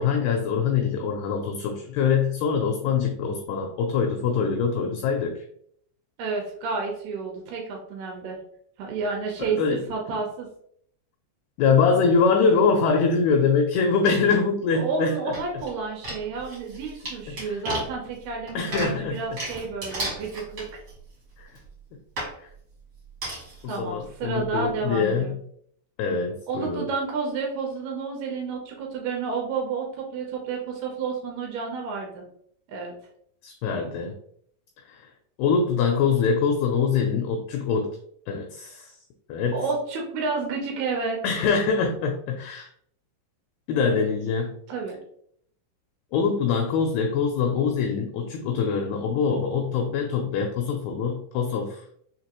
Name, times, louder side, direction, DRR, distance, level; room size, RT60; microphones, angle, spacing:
voice 1, 0.0-5.4 9.4-9.8 11.6-15.4 17.4-17.6 18.6-19.4 21.4-21.5 22.4-22.5 23.6-25.4 26.0-26.9 33.4-34.2 34.9-35.1 35.4-38.0 38.3-38.9 39.3-39.6 41.2-42.7 43.7-44.6 46.1-51.8, left 5 dB, 85° left, 4 dB, 2.3 m, -24 dB
voice 2, 6.2-8.4 8.8-10.5 14.7-20.8 23.7-25.4 26.5-32.3 32.7-32.9 39.5-41.2 44.7-45.0, right 4 dB, 75° right, 0 dB, 2.5 m, -30 dB
sound 1, 15.3-15.7 16.0-21.1 21.6-21.7 22.2-22.3 23.2-23.6 24.0-24.1 24.3-24.4, right 1 dB, 60° right, 1.0 m, -34 dB
6.6 x 2.7 x 2.9 m, 0.67 s
omnidirectional pair, 5.2 m